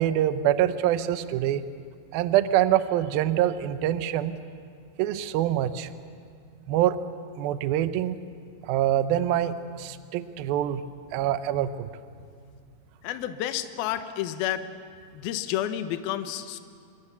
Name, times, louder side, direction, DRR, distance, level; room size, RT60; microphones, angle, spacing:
voice 1, 0.0-1.7 2.1-4.4 5.0-5.9 6.7-7.0 7.4-8.2 8.6-10.8 11.1-11.9, right 12 dB, 85° right, 12 dB, 2.1 m, -25 dB
voice 2, 13.0-14.7 15.1-16.6, left 12 dB, 75° left, 9 dB, 2.4 m, -30 dB
25.5 x 23.0 x 7.0 m, 2.2 s
omnidirectional pair, 5.3 m